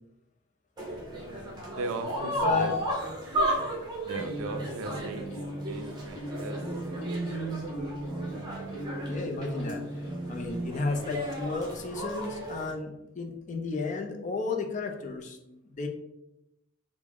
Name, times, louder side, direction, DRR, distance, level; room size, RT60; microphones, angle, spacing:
sound 1, 0.8-12.7, equal, 20° right, 0.7 m, -34 dB
voice 1, 1.7-2.8 4.0-5.3 5.7-6.6 7.1-7.3, right 3 dB, 90° right, 7 dB, 0.4 m, -37 dB
voice 2, 2.3-2.7 3.6-3.7 9.0-9.9 10.3-15.9, left 3 dB, 35° left, 3 dB, 0.4 m, -33 dB
sound 2, 4.1-10.7, right 1 dB, 65° left, 0.8 m, -37 dB
3.5 x 2.0 x 3.4 m, 0.87 s
head